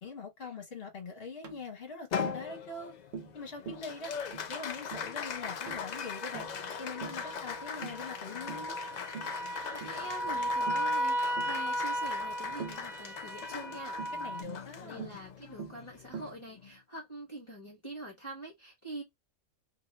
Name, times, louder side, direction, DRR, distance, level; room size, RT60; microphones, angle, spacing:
voice 1, 0.0-2.9 3.3-4.1 4.5-6.5 6.8-8.8 14.1-15.1, left 4 dB, 50° left, 1.4 m, -43 dB
Tap, 1.4-1.6 2.2-2.4 3.1-3.4 3.7-3.9 4.3-4.5 4.9-5.1 5.7-5.9 6.3-6.6 7.0-7.3 7.8-8.1 8.5-8.7 9.1-9.4 9.8-10.0 10.7-10.9 11.4-11.6 12.6-12.9 14.0-14.2 15.0-15.2 15.6-15.8 16.1-16.4, right 6 dB, 60° right, 0.9 m, -43 dB
Applause, 2.1-16.8, left 7 dB, 85° left, 0.3 m, -40 dB
sound 1, 4.9-14.4, equal, 5° right, 0.5 m, -36 dB
voice 2, 9.4-13.9 14.8-19.0, right 1 dB, 25° left, 1.3 m, -45 dB
2.9 x 2.6 x 3.2 m
omnidirectional pair, 1.4 m